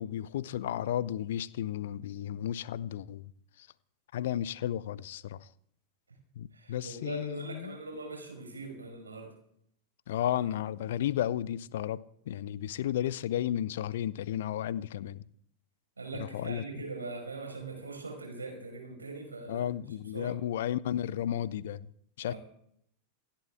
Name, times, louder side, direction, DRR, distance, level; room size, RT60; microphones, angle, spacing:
voice 1, 0.0-3.3 3.6-3.7 4.1-5.5 6.4-7.8 10.1-15.2 16.3-16.6 19.5-21.9 22.2-22.3, left 11 dB, 55° left, 0.6 m, -33 dB
voice 2, 6.5-9.3 16.0-20.3 22.2-22.4, right 3 dB, 75° right, 5.3 m, -41 dB
28.0 x 11.5 x 3.6 m
figure-of-eight pair, 90°, 0 cm